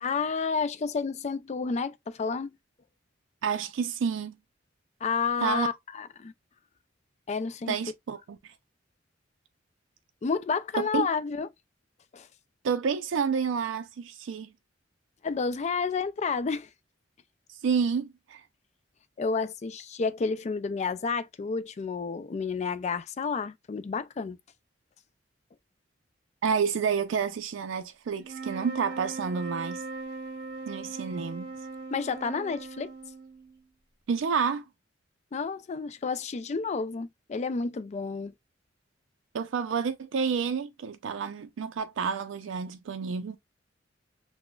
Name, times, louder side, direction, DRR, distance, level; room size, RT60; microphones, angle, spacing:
voice 1, 0.0-2.6 5.0-6.3 7.3-7.7 10.2-11.5 12.1-12.3 15.2-16.7 19.2-24.4 31.9-32.9 35.3-38.3, left 5 dB, 35° left, 0.3 m, -30 dB
voice 2, 3.4-4.4 5.4-5.7 7.7-8.5 10.8-11.1 12.6-14.5 17.6-18.4 26.4-29.8 30.7-31.5 34.1-34.6 39.3-43.4, right 6 dB, 85° right, 0.4 m, -29 dB
sound 1, 28.2-33.6, right 3 dB, 50° right, 0.9 m, -40 dB
5.9 x 2.1 x 2.2 m
head